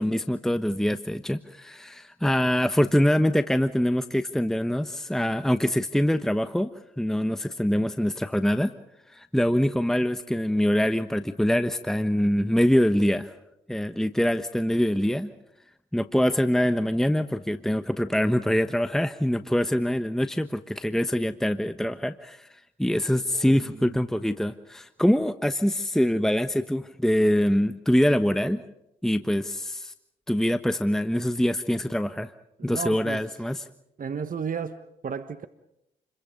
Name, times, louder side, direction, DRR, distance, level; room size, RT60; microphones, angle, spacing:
voice 1, 0.0-6.7 7.0-8.7 9.1-13.3 13.7-15.3 15.9-22.5 22.8-28.6 29.0-29.9 30.3-32.3 32.6-33.6, equal, ahead, 10 dB, 1.2 m, -24 dB
voice 2, 23.3-24.0 32.6-33.2 34.0-35.5, right 6 dB, 45° right, 11 dB, 1.4 m, -34 dB
29.0 x 22.5 x 5.3 m, 0.80 s
supercardioid pair, 50°, 19 cm